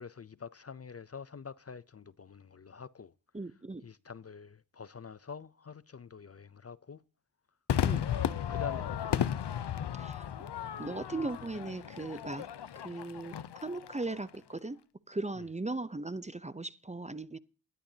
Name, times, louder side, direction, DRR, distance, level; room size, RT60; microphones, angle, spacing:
voice 1, 0.0-3.1 3.8-7.0 8.1-9.5 15.4-15.5, left 6 dB, 35° left, 0.5 m, -46 dB
voice 2, 3.3-3.8 7.8-8.0 10.0-10.3 10.8-12.5 12.8-13.3 13.6-14.8 15.1-17.4, right 2 dB, 15° right, 0.6 m, -38 dB
Crowd / Fireworks, 7.7-14.2, left 9 dB, 70° left, 0.8 m, -34 dB
17.0 x 11.5 x 2.8 m
cardioid pair, 60°, 42 cm